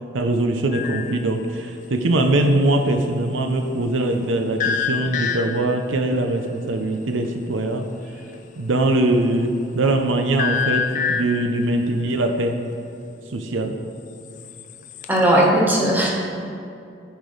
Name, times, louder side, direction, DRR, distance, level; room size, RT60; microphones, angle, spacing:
voice 1, 0.1-7.8 8.6-12.6 13.3-13.8, right 2 dB, 80° right, 5 dB, 0.6 m, -22 dB
sound 1, 0.7-1.2 4.6-5.8 10.4-11.5 14.3-15.2, left 6 dB, 40° left, 0.4 m, -25 dB
voice 2, 15.1-16.1, right 1 dB, 10° right, -4 dB, 1.3 m, -17 dB
12.5 x 5.0 x 4.0 m, 2.5 s
head